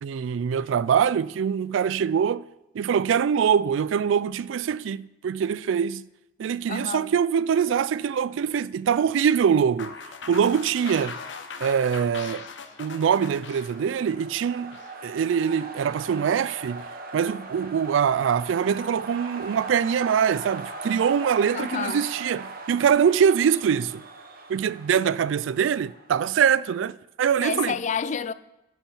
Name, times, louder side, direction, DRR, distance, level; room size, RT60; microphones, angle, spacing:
voice 1, 0.0-2.5 2.7-6.0 6.4-9.9 10.3-11.2 11.6-12.5 12.8-14.8 15.0-16.9 17.1-24.0 24.5-27.8, right 7 dB, 85° right, 0.3 m, -23 dB
voice 2, 6.7-7.1 21.5-22.0 27.4-28.3, left 6 dB, 40° left, 0.4 m, -29 dB
sound 1, 9.8-14.9, left 5 dB, 75° left, 0.9 m, -40 dB
sound 2, 12.5-26.3, right 3 dB, 50° right, 1.0 m, -40 dB
11.0 x 7.2 x 5.5 m
head